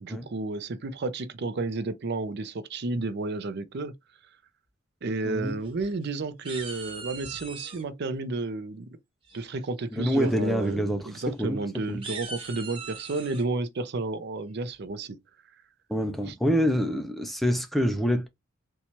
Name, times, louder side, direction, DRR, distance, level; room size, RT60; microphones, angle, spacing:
voice 1, 0.0-3.9 5.0-8.9 9.3-15.2 16.3-16.4, right 3 dB, 55° right, 0.5 m, -32 dB
voice 2, 5.2-5.6 9.9-12.0 15.9-18.3, equal, ahead, 0.4 m, -26 dB
sound 1, 5.5-6.1 6.4-7.8 9.3-9.7 10.1-10.3 10.6-10.7 11.1-11.3 11.9-13.4, right 4 dB, 25° right, 1.1 m, -40 dB
4.1 x 2.3 x 2.9 m
head